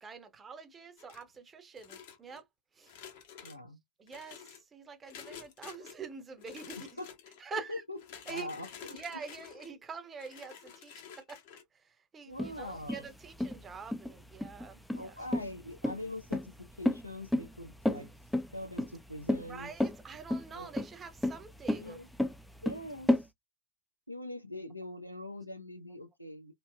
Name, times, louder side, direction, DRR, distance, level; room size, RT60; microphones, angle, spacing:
voice 1, 0.0-2.4 2.8-2.9 4.0-4.4 4.7-6.9 7.4-7.8 8.3-8.5 8.9-11.4 12.1-15.1 19.5-22.0, right 5 dB, 20° right, 0.7 m, -45 dB
sound 1, 1.0-1.4 1.8-2.4 2.8-3.6 4.1-4.6 5.1-6.0 6.4-7.4 8.0-9.7 10.2-11.6, left 8 dB, 50° left, 0.8 m, -50 dB
voice 2, 3.4-3.8 7.0-7.1 7.5-8.0 8.3-9.0 12.3-13.1 14.9-18.1 18.5-19.7 20.5-20.7 21.8-22.1 22.6-23.1 24.1-26.5, left 1 dB, 90° left, 0.7 m, -43 dB
sound 2, 12.4-23.2, left 1 dB, 5° left, 0.4 m, -32 dB
3.1 x 2.7 x 2.2 m
figure-of-eight pair, 90°, 0 cm